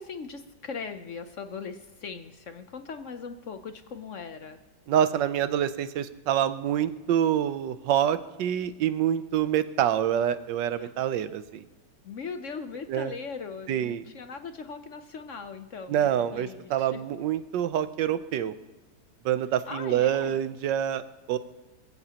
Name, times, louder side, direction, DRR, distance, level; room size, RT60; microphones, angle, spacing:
voice 1, 0.0-4.6 10.8-10.9 12.0-17.0 19.7-20.4, left 5 dB, 60° left, 8 dB, 0.9 m, -39 dB
voice 2, 4.9-11.7 12.9-13.1 13.7-14.0 15.9-18.5 19.2-21.4, right 10 dB, 90° right, 13 dB, 1.4 m, -26 dB
23.5 x 15.0 x 2.9 m, 1.2 s
omnidirectional pair, 1.9 m